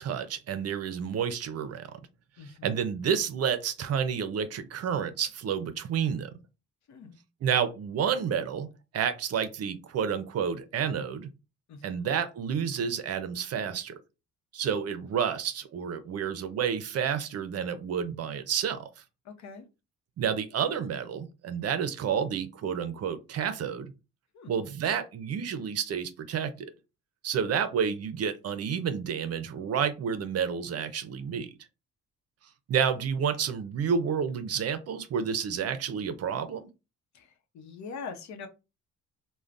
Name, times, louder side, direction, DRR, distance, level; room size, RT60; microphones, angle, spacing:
voice 1, 0.0-2.0 2.4-6.3 7.4-8.7 8.9-11.3 11.8-14.0 14.5-18.9 20.2-23.9 24.5-26.7 27.2-31.5 32.7-36.7, right 7 dB, 55° right, 0.6 m, -30 dB
voice 2, 2.4-2.7 6.9-7.2 11.7-12.1 19.2-19.6 24.3-24.5 37.1-38.5, left 5 dB, 65° left, 0.8 m, -43 dB
3.2 x 2.2 x 2.5 m
cardioid pair, 90°, 30 cm